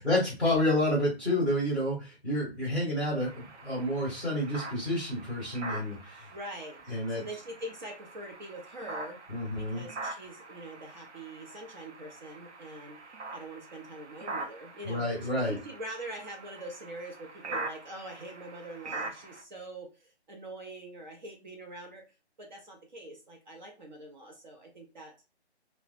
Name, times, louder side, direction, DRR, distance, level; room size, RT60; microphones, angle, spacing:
voice 1, 0.0-6.3 6.9-7.2 9.3-9.8 14.8-15.6, left 1 dB, ahead, -5 dB, 0.8 m, -29 dB
sound 1, 3.2-19.4, right 3 dB, 80° right, 0.7 m, -43 dB
voice 2, 6.3-6.8 7.1-9.2 9.6-13.0 13.3-22.0 22.4-25.1, right 1 dB, 40° right, 2 dB, 0.6 m, -44 dB
2.9 x 2.1 x 2.4 m, 0.30 s
figure-of-eight pair, 145°, 34 cm